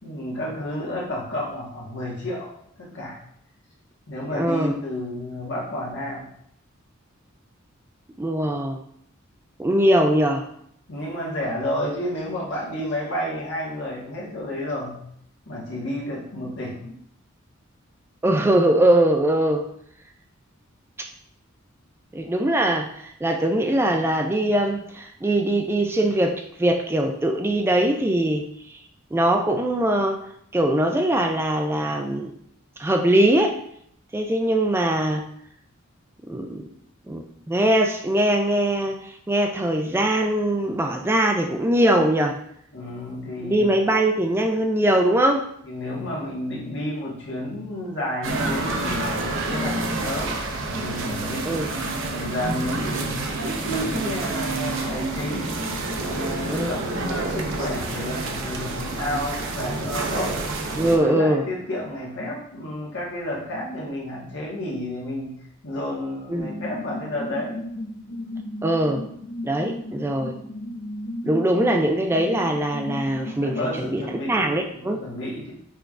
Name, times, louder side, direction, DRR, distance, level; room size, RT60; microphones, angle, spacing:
voice 1, 0.0-2.5 2.8-3.2 4.1-6.3 10.9-15.0 15.5-16.9 42.7-43.6 45.6-55.6 56.0-60.4 60.9-67.6 73.2-75.5, left 1 dB, 60° left, -5 dB, 1.5 m, -31 dB
voice 2, 4.3-4.7 8.2-8.8 9.6-10.4 18.2-19.6 22.1-28.8 29.1-30.2 30.5-32.3 32.8-33.5 34.1-35.2 36.3-36.7 37.1-42.4 43.4-45.4 51.5-51.7 56.5-56.8 60.8-61.5 66.3-66.5 68.6-69.0 69.4-70.4 71.2-74.0 74.3-75.0, right 1 dB, 10° right, 3 dB, 0.3 m, -21 dB
sound 1, 48.2-61.0, right 2 dB, 65° right, 0.7 m, -28 dB
sound 2, 66.4-73.7, left 1 dB, 45° left, 0.5 m, -35 dB
5.9 x 3.3 x 2.4 m, 0.69 s
head